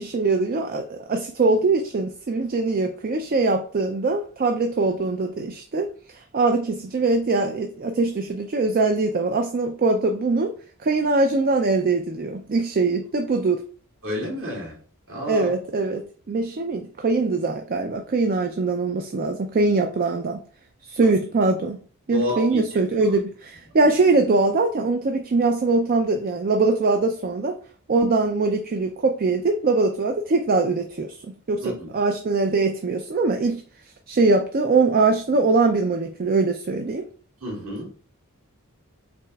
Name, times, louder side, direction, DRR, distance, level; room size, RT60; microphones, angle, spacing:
voice 1, 0.0-10.5 10.8-13.6 15.3-20.4 20.8-21.8 22.1-27.6 27.9-33.6 34.1-37.1, right 3 dB, 40° right, 0.4 m, -22 dB
voice 2, 14.0-14.8 15.1-15.5 22.1-22.6 31.6-31.9 37.4-37.9, left 1 dB, 60° right, 2.3 m, -29 dB
5.9 x 3.8 x 2.3 m
head